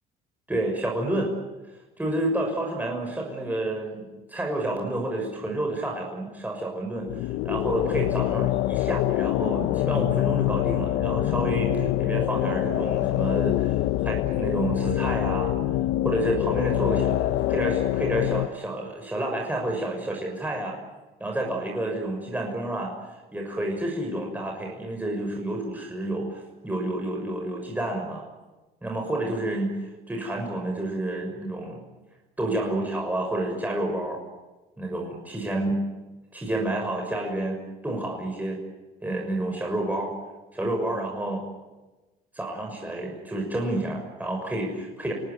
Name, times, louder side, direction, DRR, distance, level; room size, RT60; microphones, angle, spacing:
voice 1, 0.5-1.3 2.0-15.6 16.0-20.8 21.2-28.2 28.8-29.8 30.1-31.8 32.4-34.2 34.8-35.9 36.3-38.6 39.0-40.1 40.5-41.5 42.3-45.1, right 1 dB, 10° right, 0 dB, 6.4 m, -29 dB
sound 1, 7.0-18.5, left 15 dB, 90° left, 0.8 m, -25 dB
28.5 x 19.0 x 9.6 m, 1.1 s
cardioid pair, 110°, 17 cm